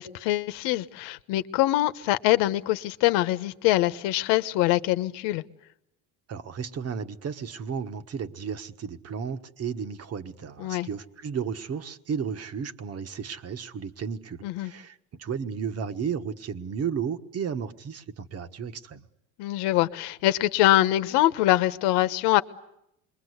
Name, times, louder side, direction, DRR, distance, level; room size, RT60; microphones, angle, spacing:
voice 1, 0.0-5.4 10.6-10.9 14.4-14.7 19.4-22.4, left 15 dB, 80° left, 1.3 m, -24 dB
voice 2, 6.3-19.0, right 7 dB, 35° right, 1.4 m, -33 dB
28.5 x 22.5 x 8.1 m
cardioid pair, 130°, 41 cm